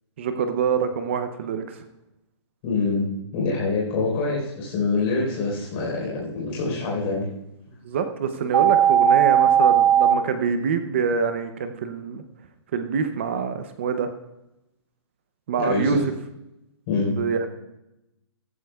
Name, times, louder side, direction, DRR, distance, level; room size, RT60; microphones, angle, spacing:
voice 1, 0.2-1.8 7.8-12.2 12.7-14.1 15.5-16.0 17.0-17.5, right 6 dB, 25° right, 9 dB, 0.6 m, -25 dB
voice 2, 2.6-3.0 3.3-7.3 15.6-16.0 16.9-17.1, left 3 dB, 25° left, -2 dB, 4.2 m, -25 dB
sound 1, 8.5-10.1, right 9 dB, 85° right, 0.8 m, -17 dB
15.5 x 14.5 x 2.4 m, 0.88 s
hypercardioid pair, 180°, 16 cm